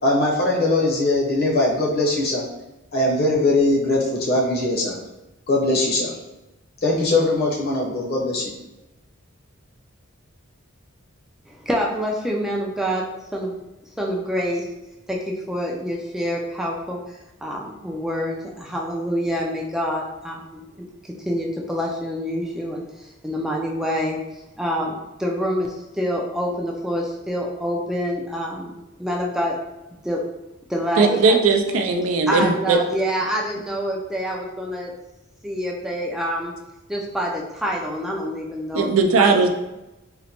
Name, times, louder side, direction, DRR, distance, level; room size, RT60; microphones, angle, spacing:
voice 1, 0.0-2.5 2.9-5.0 5.5-6.1 6.8-8.5, left 2 dB, 50° left, -3 dB, 0.8 m, -21 dB
voice 2, 11.5-13.6 14.0-14.7 15.1-28.7 29.0-29.6 30.0-30.3 30.7-31.4 32.3-34.9 35.4-36.6 36.9-38.9 39.2-39.5, equal, ahead, -2 dB, 0.3 m, -27 dB
voice 3, 31.0-32.8 38.7-39.5, right 4 dB, 85° right, 4 dB, 0.4 m, -18 dB
3.8 x 2.1 x 2.9 m, 0.98 s
head